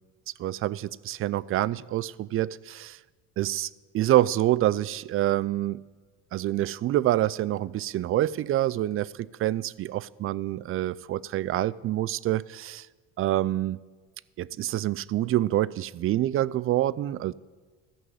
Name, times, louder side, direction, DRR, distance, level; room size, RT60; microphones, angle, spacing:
voice 1, 0.4-3.0 3.4-5.8 6.3-12.9 13.2-13.8 14.4-17.3, right 14 dB, 40° right, 0.4 m, -27 dB
13.5 x 6.1 x 7.9 m
supercardioid pair, 80°, 34 cm